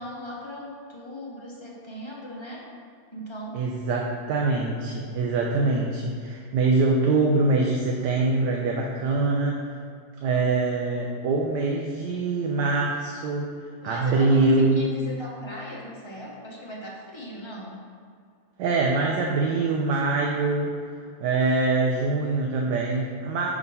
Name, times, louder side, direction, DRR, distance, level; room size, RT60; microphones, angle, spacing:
voice 1, 0.0-2.7 3.1-3.6 13.8-17.8, equal, 25° left, -4 dB, 0.7 m, -38 dB
voice 2, 3.5-9.6 10.2-13.5 13.8-14.8 18.6-20.7 21.2-23.5, right 3 dB, 90° right, -1 dB, 1.3 m, -24 dB
6.0 x 3.6 x 5.4 m, 2.2 s
omnidirectional pair, 1.8 m